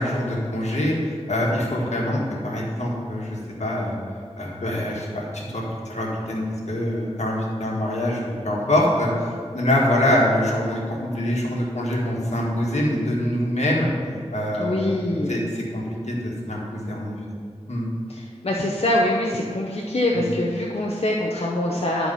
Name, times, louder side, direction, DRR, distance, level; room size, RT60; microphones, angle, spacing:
voice 1, 0.0-3.9 4.4-13.9 14.3-17.2 17.7-17.9 20.1-20.3, left 1 dB, 85° left, -3 dB, 1.6 m, -24 dB
voice 2, 14.6-15.3 18.1-22.1, left 1 dB, 65° left, -3 dB, 0.8 m, -24 dB
11.0 x 4.5 x 5.5 m, 2.1 s
wide cardioid pair, 45°, 11 cm